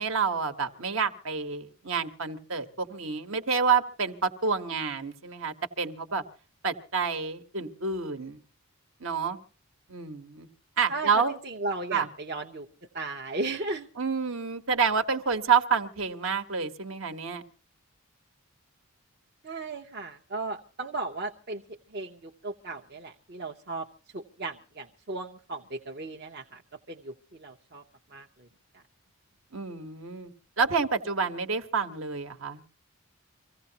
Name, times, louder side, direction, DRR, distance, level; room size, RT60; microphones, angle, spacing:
voice 1, 0.0-6.2 6.6-8.4 9.0-9.4 9.9-10.5 10.8-11.3 11.9-12.1 14.0-17.4 29.5-30.3 30.6-32.6, right 5 dB, 65° right, 7 dB, 1.3 m, -28 dB
voice 2, 10.9-12.7 12.9-13.9 19.4-21.6 21.9-23.9 24.1-26.6 26.9-27.8 28.1-28.5, right 2 dB, 45° right, 1 dB, 0.9 m, -36 dB
25.5 x 16.0 x 2.9 m, 0.37 s
head